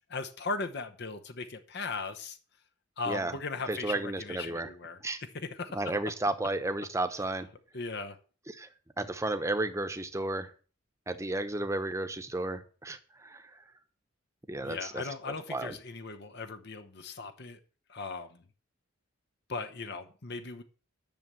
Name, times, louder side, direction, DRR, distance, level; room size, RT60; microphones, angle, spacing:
voice 1, 0.1-2.4 3.0-5.0 5.4-5.8 7.7-8.2 14.6-17.6 17.9-18.4 19.5-20.6, left 4 dB, 55° left, 1.0 m, -38 dB
voice 2, 3.0-3.4 3.7-4.7 5.0-5.2 5.7-7.5 8.5-8.7 9.0-10.5 11.1-13.5 14.5-15.0 15.5-15.8, right 2 dB, 15° right, 1.0 m, -33 dB
10.5 x 6.8 x 7.6 m
head